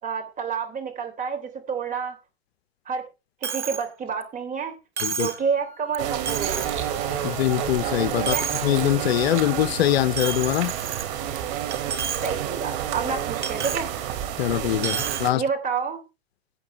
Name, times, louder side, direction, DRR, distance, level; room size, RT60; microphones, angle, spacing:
voice 1, 0.0-2.2 2.8-3.1 3.4-4.8 5.1-6.7 8.3-8.5 12.2-13.9 15.3-16.0, right 6 dB, 25° right, 3.3 m, -29 dB
Coin (dropping), 3.4-3.8 4.2-4.3 5.0-5.4 5.9-6.0 6.3-6.8 7.3-7.8 8.1-8.8 9.2-9.4 10.2-11.4 11.7-12.3 12.6-12.7 13.4-13.8 14.8-15.2, right 7 dB, 85° right, 2.7 m, -30 dB
sound 1, 5.1-13.1, right 1 dB, 40° right, 6.0 m, -47 dB
sound 2, 6.0-15.3, right 10 dB, 55° right, 3.0 m, -29 dB
voice 2, 7.2-8.3 8.6-10.7 14.4-15.4, left 14 dB, 65° left, 0.6 m, -23 dB
17.5 x 8.5 x 3.3 m
hypercardioid pair, 120°, 33 cm